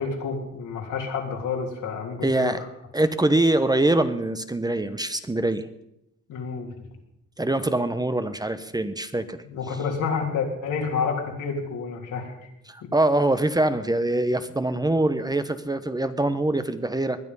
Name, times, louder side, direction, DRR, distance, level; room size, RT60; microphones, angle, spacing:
voice 1, 0.0-2.6 6.3-6.7 9.4-12.3, left 5 dB, 85° left, 0 dB, 3.6 m, -29 dB
voice 2, 2.2-2.6 2.9-5.7 7.4-9.4 12.7-17.2, right 2 dB, 15° right, 11 dB, 0.9 m, -24 dB
21.0 x 10.5 x 5.5 m, 0.83 s
cardioid pair, 90°, 30 cm